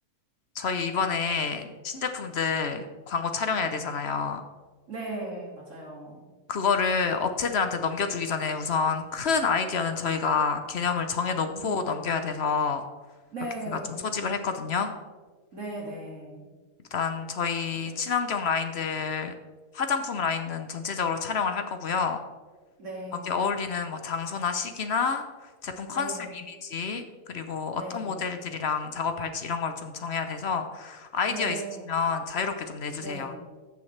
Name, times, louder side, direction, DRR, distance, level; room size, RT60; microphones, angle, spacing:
voice 1, 0.5-4.4 6.5-12.8 13.7-14.9 16.9-19.3 19.7-22.2 23.2-33.3, left 5 dB, 55° left, 7 dB, 0.8 m, -28 dB
voice 2, 4.9-6.2 11.5-12.1 13.3-14.1 15.5-16.5 22.8-23.4 25.9-26.4 27.7-28.2 31.3-32.0 33.0-33.5, right 2 dB, 50° right, -2 dB, 2.5 m, -38 dB
14.5 x 7.0 x 3.3 m, 1.3 s
omnidirectional pair, 1.7 m